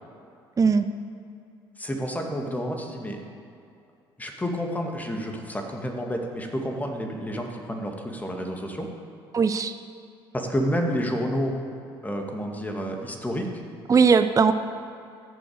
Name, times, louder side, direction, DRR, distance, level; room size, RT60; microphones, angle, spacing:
voice 1, 0.6-0.9 9.3-9.7 13.9-14.5, right 5 dB, 25° right, 10 dB, 0.7 m, -19 dB
voice 2, 1.8-3.2 4.2-8.9 10.3-11.5 12.0-13.6, equal, 10° left, 2 dB, 2.3 m, -29 dB
15.0 x 7.2 x 8.1 m, 2.6 s
figure-of-eight pair, 60°, 13 cm